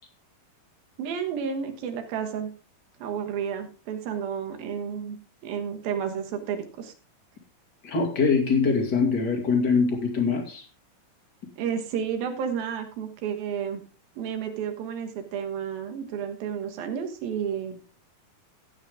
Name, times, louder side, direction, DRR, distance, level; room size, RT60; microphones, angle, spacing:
voice 1, 1.0-2.5 3.0-5.2 5.4-6.9 11.6-13.8 14.2-17.8, right 7 dB, 75° right, 5 dB, 3.2 m, -31 dB
voice 2, 7.8-10.6, left 5 dB, 35° left, 2 dB, 2.3 m, -23 dB
13.5 x 9.0 x 3.6 m, 0.36 s
omnidirectional pair, 4.3 m